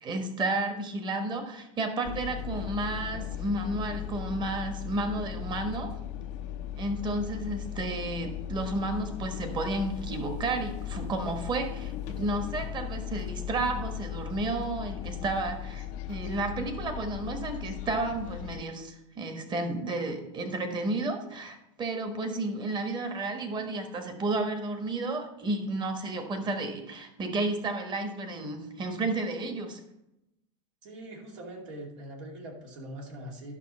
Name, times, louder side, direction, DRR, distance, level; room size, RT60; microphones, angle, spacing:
voice 1, 0.0-5.9 6.8-29.8, right 2 dB, 30° right, 5 dB, 1.4 m, -32 dB
sound 1, 2.0-18.6, left 10 dB, 50° left, 0.5 m, -37 dB
voice 2, 30.8-33.5, right 1 dB, 75° right, 0 dB, 2.5 m, -42 dB
11.5 x 5.9 x 4.3 m, 0.90 s
supercardioid pair, 120°, 16 cm